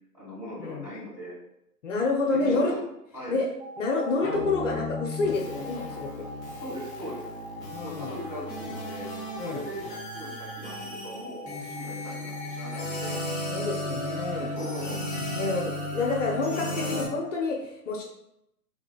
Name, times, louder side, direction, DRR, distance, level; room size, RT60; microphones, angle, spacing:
voice 1, 0.1-1.3 2.3-2.8 3.1-3.4 6.4-7.2 7.8-13.1 14.3-15.0 15.4-15.6, equal, 5° right, -12 dB, 1.1 m, -40 dB
voice 2, 1.8-2.7 3.3-3.5 3.8-6.3 7.7-8.1 9.4-9.6 13.5-14.5 15.4-18.0, left 3 dB, 50° left, 0 dB, 0.7 m, -28 dB
sound 1, 3.6-13.2, left 2 dB, 35° right, 0.7 m, -42 dB
sound 2, 4.2-17.1, left 1 dB, 20° left, 1.0 m, -35 dB
3.6 x 3.5 x 2.3 m, 0.82 s
figure-of-eight pair, 130°, 48 cm